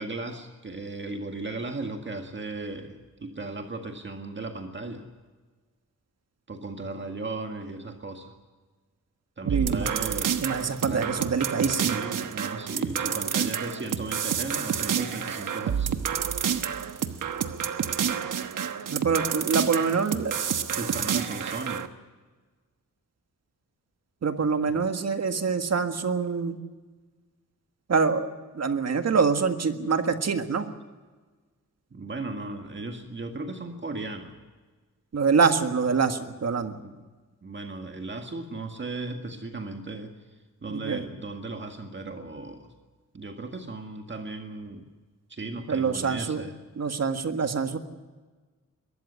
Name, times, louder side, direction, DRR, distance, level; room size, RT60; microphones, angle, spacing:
voice 1, 0.0-5.1 6.5-8.3 9.4-11.1 11.6-16.0 20.8-21.9 24.6-24.9 31.9-34.4 36.8-37.0 37.4-40.1 40.6-42.7 43.1-44.9 45.3-46.6, right 3 dB, 35° right, 4 dB, 1.9 m, -36 dB
voice 2, 9.4-9.9 10.4-12.0 18.9-20.3 24.2-26.6 27.9-30.7 35.1-36.8 40.7-41.0 45.7-46.4 46.8-47.8, right 5 dB, 55° right, 8 dB, 1.7 m, -25 dB
sound 1, 9.5-21.9, right 8 dB, 70° right, 1.3 m, -29 dB
22.0 x 14.0 x 9.9 m, 1.4 s
wide cardioid pair, 120°, 32 cm